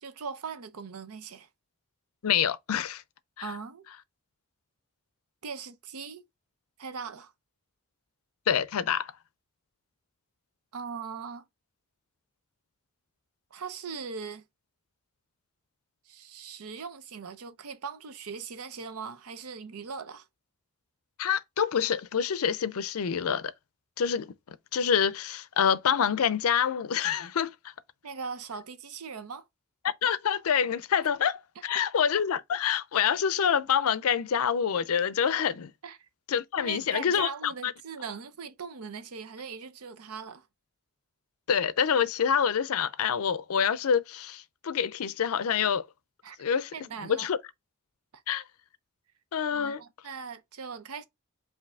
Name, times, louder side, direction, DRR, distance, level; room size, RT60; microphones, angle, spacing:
voice 1, 0.0-1.5 3.4-3.8 5.4-6.2 6.8-7.3 10.7-11.5 13.5-14.4 16.1-20.3 28.0-29.5 31.7-31.8 35.8-36.0 36.6-40.5 46.2-46.4 46.7-47.3 48.1-48.2 49.5-51.0, right 5 dB, 85° right, 0.6 m, -40 dB
voice 2, 2.2-3.0 3.4-3.5 8.5-9.1 21.2-23.5 24.0-24.3 24.7-27.5 30.0-35.7 36.3-37.7 41.5-45.8 46.4-46.7 47.1-47.4 48.3-48.4 49.3-49.8, left 7 dB, 80° left, 0.5 m, -26 dB
4.8 x 2.7 x 3.4 m
head